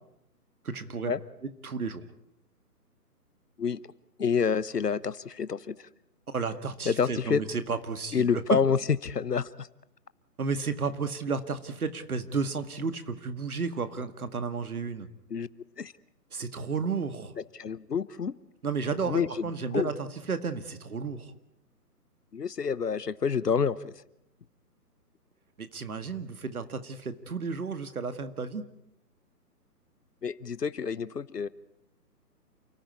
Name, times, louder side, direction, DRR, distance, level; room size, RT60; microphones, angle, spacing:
voice 1, 0.6-1.1 1.6-2.0 6.3-8.3 10.4-15.1 16.3-17.3 18.6-21.3 25.6-28.6, right 5 dB, 60° right, 10 dB, 2.0 m, -32 dB
voice 2, 4.2-5.9 6.8-7.4 8.1-9.7 15.3-15.5 15.8-15.9 17.5-18.4 19.1-19.9 22.3-24.0 30.2-31.5, left 6 dB, 70° left, 18 dB, 1.1 m, -28 dB
29.0 x 14.5 x 9.7 m, 0.82 s
figure-of-eight pair, 140°, 48 cm